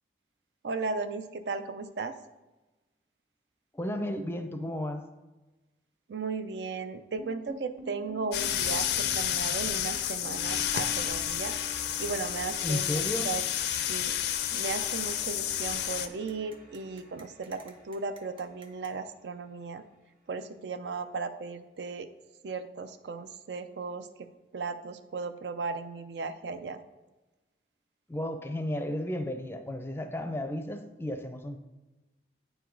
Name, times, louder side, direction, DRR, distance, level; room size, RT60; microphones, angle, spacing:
voice 1, 0.6-2.2 6.1-11.6 12.0-13.0 13.2-13.4 13.9-14.2 14.5-19.8 20.3-22.1 22.4-24.1 24.5-26.8, right 4 dB, 80° right, 10 dB, 0.5 m, -36 dB
voice 2, 3.7-5.0 12.6-13.4 28.1-31.6, left 1 dB, 15° left, 7 dB, 0.4 m, -33 dB
sound 1, 7.2-19.4, equal, 50° right, 1.4 m, -49 dB
sound 2, 8.3-16.1, left 11 dB, 70° left, 0.4 m, -30 dB
sound 3, 11.7-18.9, right 4 dB, 30° right, 0.6 m, -53 dB
9.0 x 4.8 x 3.9 m, 1.1 s
head